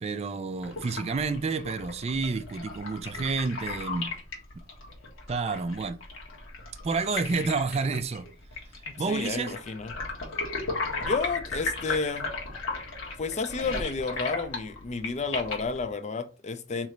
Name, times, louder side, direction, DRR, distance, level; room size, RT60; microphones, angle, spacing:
voice 1, 0.0-4.2 5.3-6.0 6.8-8.3 9.0-9.6, right 4 dB, 30° right, 0.3 m, -29 dB
sound 1, 0.6-15.9, left 3 dB, 90° left, 1.4 m, -36 dB
voice 2, 8.9-10.0 11.0-12.3 13.2-16.9, left 4 dB, 35° left, 0.4 m, -31 dB
3.8 x 3.1 x 3.1 m
head